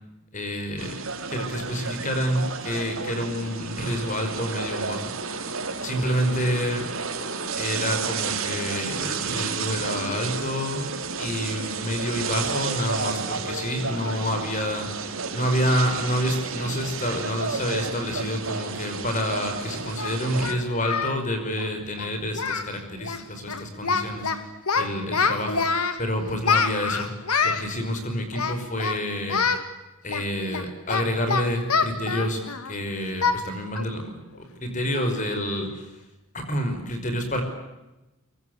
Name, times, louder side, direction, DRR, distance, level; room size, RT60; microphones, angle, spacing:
voice 1, 0.3-1.0 1.3-5.0 5.8-6.9 7.6-10.9 11.2-14.9 15.3-24.3 24.7-25.7 26.0-27.1 27.4-29.5 30.0-35.9 36.3-37.4, equal, 35° left, 6 dB, 5.6 m, -28 dB
sound 1, 0.8-20.5, right 5 dB, 65° right, 3.4 m, -31 dB
Singing, 19.2-19.3 20.0-21.2 21.5-21.7 22.0-22.1 22.3-22.7 23.0-23.2 23.5-24.4 24.7-26.0 26.4-27.6 28.3-29.0 29.3-29.6 30.1-32.7 33.2-33.4 33.8-33.9 34.4-34.5 34.9-35.2, left 5 dB, 80° left, 2.5 m, -26 dB
24.0 x 23.5 x 8.2 m, 1.0 s
head